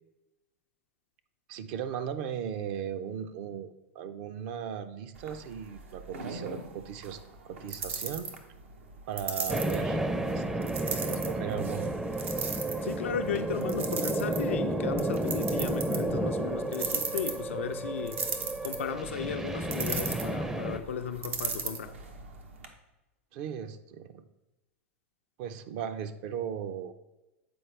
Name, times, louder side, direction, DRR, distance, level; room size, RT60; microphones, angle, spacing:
voice 1, 1.5-7.2 7.4-8.3 9.1-11.9 23.3-24.2 25.4-26.9, right 8 dB, 60° right, 0.5 m, -37 dB
sound 1, 5.1-22.7, right 5 dB, 85° right, 0.8 m, -39 dB
sound 2, 9.5-20.8, right 1 dB, 10° right, 0.4 m, -32 dB
voice 2, 12.8-18.2 18.6-21.9, left 7 dB, 85° left, 0.5 m, -35 dB
7.7 x 4.3 x 3.2 m
hypercardioid pair, 105°, 7 cm